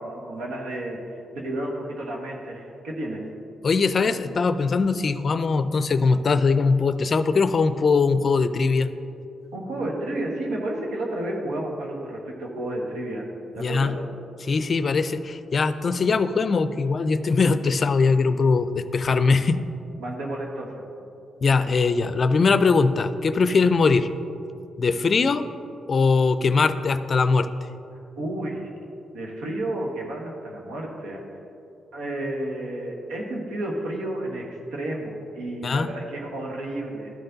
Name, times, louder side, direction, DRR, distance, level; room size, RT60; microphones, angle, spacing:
voice 1, 0.0-3.2 9.5-13.2 13.5-13.9 20.0-21.0 28.2-28.7 29.1-31.2 31.9-37.1, right 1 dB, 85° right, -1 dB, 1.3 m, -31 dB
voice 2, 3.6-8.9 13.6-14.0 14.4-19.6 21.4-24.1 24.8-25.4 25.9-27.5 35.6-35.9, left 4 dB, 50° left, 11 dB, 0.4 m, -21 dB
12.5 x 4.3 x 3.9 m, 2.7 s
supercardioid pair, 60°, 0 cm